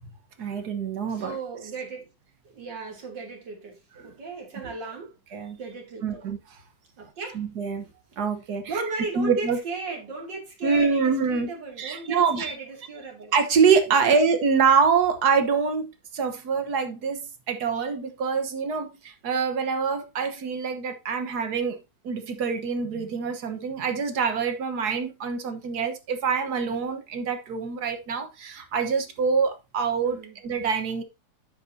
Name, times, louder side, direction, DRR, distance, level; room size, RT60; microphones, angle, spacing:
voice 1, 0.4-1.4 4.0-4.1 5.3-5.6 6.0-6.4 7.4-7.9 8.2-8.7 9.2-9.6 10.6-11.5 11.8-12.5 13.3-15.9 16.1-21.8 22.0-30.2 30.4-31.0, right 5 dB, 65° right, 1.6 m, -25 dB
voice 2, 1.1-2.1 2.4-5.1 5.6-6.2 7.0-7.4 8.7-13.3 14.0-14.2 30.0-30.4, right 3 dB, 85° right, 3.2 m, -36 dB
9.4 x 8.0 x 2.7 m
omnidirectional pair, 1.9 m